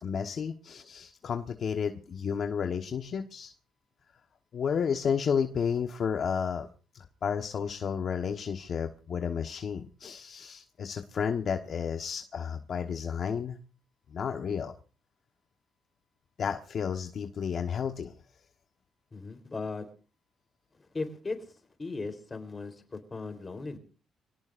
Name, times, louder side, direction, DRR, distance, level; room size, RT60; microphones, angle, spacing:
voice 1, 0.0-3.5 4.5-6.7 6.9-13.6 14.1-14.7 16.4-18.1, left 7 dB, 55° left, 4 dB, 1.3 m, -32 dB
voice 2, 19.1-19.9 20.7-21.5 21.8-23.8, left 3 dB, 25° left, 8 dB, 3.9 m, -37 dB
25.5 x 18.0 x 2.6 m, 0.37 s
cardioid pair, 90°, 0 cm